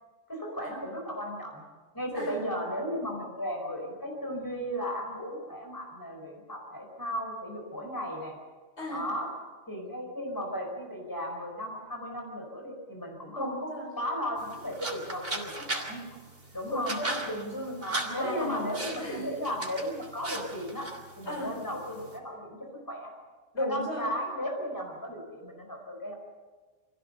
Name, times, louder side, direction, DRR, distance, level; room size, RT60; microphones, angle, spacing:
voice 1, 0.3-1.6 1.9-8.4 8.9-9.3 9.7-16.2 16.5-17.0 17.8-20.9 21.2-23.1 23.6-26.1, equal, 20° left, 1 dB, 4.9 m, -35 dB
voice 2, 13.3-13.9 16.7-18.6 19.0-19.4 21.2-21.5 23.5-24.1, equal, 75° left, 0 dB, 5.1 m, -35 dB
sound 1, 14.4-22.2, right 2 dB, 55° right, 3.6 m, -39 dB
25.5 x 15.5 x 6.8 m, 1.3 s
omnidirectional pair, 1.1 m